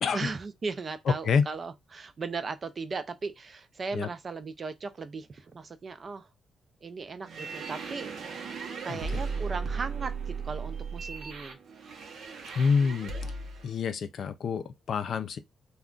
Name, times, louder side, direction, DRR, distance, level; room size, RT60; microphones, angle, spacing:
voice 1, 0.1-6.3 6.8-8.5 8.8-11.6, right 4 dB, 30° right, 0.3 m, -37 dB
sound 1, 7.2-13.7, right 4 dB, 60° right, 0.7 m, -36 dB
voice 2, 12.6-13.1 13.6-15.4, left 5 dB, 55° left, 0.4 m, -27 dB
2.3 x 2.2 x 3.6 m
wide cardioid pair, 160°, 0 cm